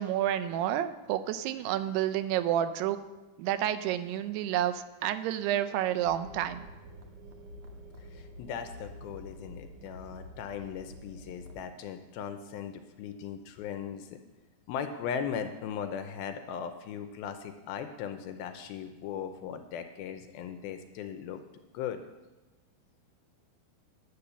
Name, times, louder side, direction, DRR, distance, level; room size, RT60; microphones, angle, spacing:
voice 1, 0.0-3.0 3.4-6.7, right 11 dB, 85° right, 10 dB, 2.6 m, -30 dB
sound 1, 6.0-11.6, equal, 65° right, 1.8 m, -48 dB
voice 2, 8.1-14.2 14.7-21.4 21.7-22.0, left 8 dB, 80° left, 7 dB, 2.3 m, -38 dB
10.5 x 8.5 x 6.8 m, 1.1 s
omnidirectional pair, 4.7 m